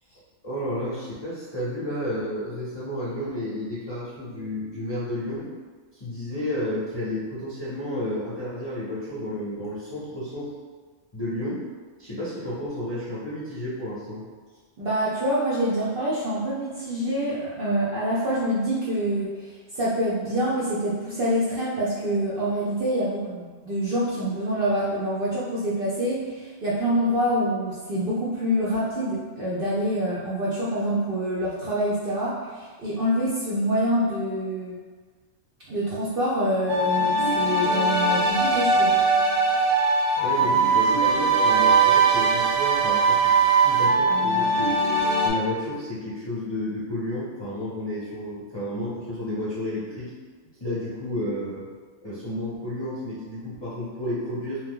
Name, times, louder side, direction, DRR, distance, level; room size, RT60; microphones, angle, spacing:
voice 1, 0.1-5.5 5.9-10.5 11.1-11.6 12.0-14.2 40.2-44.7 45.2-50.1 50.6-51.7 52.0-54.6, left 1 dB, 30° left, -10 dB, 0.5 m, -31 dB
voice 2, 14.8-34.7 35.7-39.0, equal, 60° right, -6 dB, 0.6 m, -26 dB
sound 1, 36.7-45.3, right 3 dB, 85° right, 1.0 m, -20 dB
2.8 x 2.1 x 3.5 m, 1.4 s
omnidirectional pair, 1.3 m